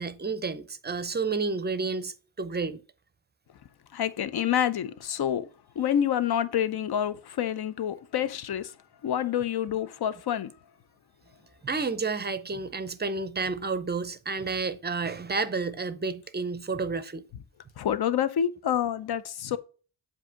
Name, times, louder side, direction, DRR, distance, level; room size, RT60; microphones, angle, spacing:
voice 1, 0.0-2.8 11.6-17.2, right 4 dB, 20° right, 0.5 m, -30 dB
voice 2, 3.9-5.5 5.8-8.7 9.0-10.5 17.8-19.6, left 9 dB, 55° left, 0.7 m, -27 dB
7.6 x 2.8 x 5.6 m
cardioid pair, 110°, 47 cm